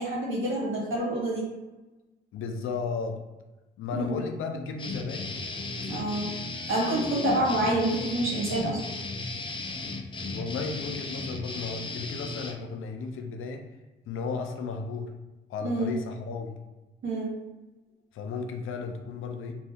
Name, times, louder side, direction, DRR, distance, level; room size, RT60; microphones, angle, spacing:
voice 1, 0.0-1.4 3.9-4.2 5.7-6.3 6.7-8.8 15.6-16.0 17.0-17.4, right 1 dB, 70° right, -4 dB, 1.4 m, -27 dB
voice 2, 2.3-3.2 3.8-5.4 10.3-13.7 14.1-15.1 15.5-16.5 18.1-19.5, left 5 dB, 75° left, 5 dB, 0.5 m, -34 dB
sound 1, 4.8-12.5, left 2 dB, 25° left, 0.5 m, -36 dB
2.6 x 2.6 x 3.5 m, 1.1 s
cardioid pair, 75°, 21 cm